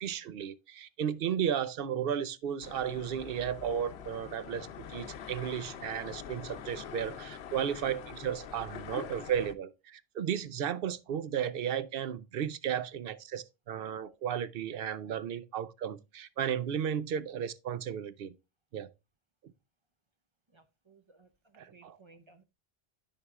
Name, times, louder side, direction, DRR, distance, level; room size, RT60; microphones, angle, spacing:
voice 1, 0.0-18.3 18.7-18.9 21.6-22.0, right 9 dB, 65° right, 0.8 m, -34 dB
sound 1, 2.6-9.5, left 8 dB, 90° left, 0.9 m, -44 dB
voice 2, 20.5-22.4, right 3 dB, 35° right, 0.6 m, -60 dB
12.5 x 4.7 x 2.3 m
omnidirectional pair, 1.0 m